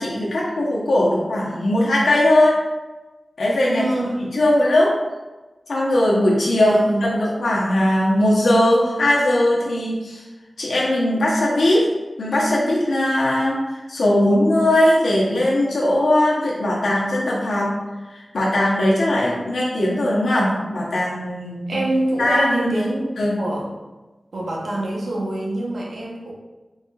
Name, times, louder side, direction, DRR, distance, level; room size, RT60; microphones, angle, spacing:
voice 1, 0.0-2.6 3.4-3.8 4.3-4.9 5.7-6.8 7.0-10.3 10.6-11.9 12.2-17.7 18.1-21.8 22.2-22.8 23.2-23.4, left 1 dB, 90° left, -5 dB, 0.8 m, -19 dB
voice 2, 3.7-4.2 6.5-7.0 21.7-23.1 23.4-23.7 24.3-26.3, right 1 dB, 80° right, -2 dB, 0.9 m, -25 dB
4.2 x 4.0 x 2.3 m, 1.2 s
wide cardioid pair, 75°, 0 cm